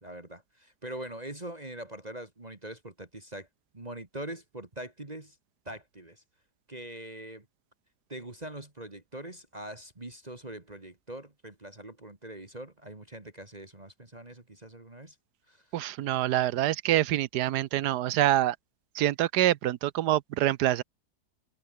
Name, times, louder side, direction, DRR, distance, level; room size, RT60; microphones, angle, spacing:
voice 1, 0.0-3.5 3.7-5.4 5.7-6.2 6.7-7.5 8.1-15.2 15.5-15.7, right 1 dB, 25° right, 2.2 m, -43 dB
voice 2, 15.7-18.6 18.9-20.8, right 13 dB, 85° right, 1.3 m, -26 dB
omnidirectional pair, 1.7 m